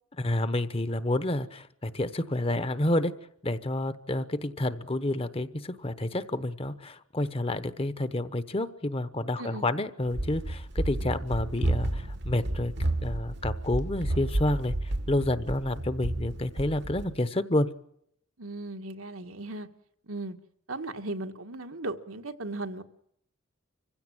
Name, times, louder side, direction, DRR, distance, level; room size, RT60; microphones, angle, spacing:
voice 1, 0.2-3.1 3.4-12.7 13.0-14.7 15.1-17.7, left 1 dB, 25° left, 13 dB, 1.0 m, -29 dB
Run, 10.1-17.1, right 1 dB, 55° right, 1.2 m, -31 dB
voice 2, 18.4-19.7 20.1-20.4 20.7-22.8, right 2 dB, 80° right, 6 dB, 1.7 m, -37 dB
25.5 x 16.0 x 9.0 m, 0.74 s
head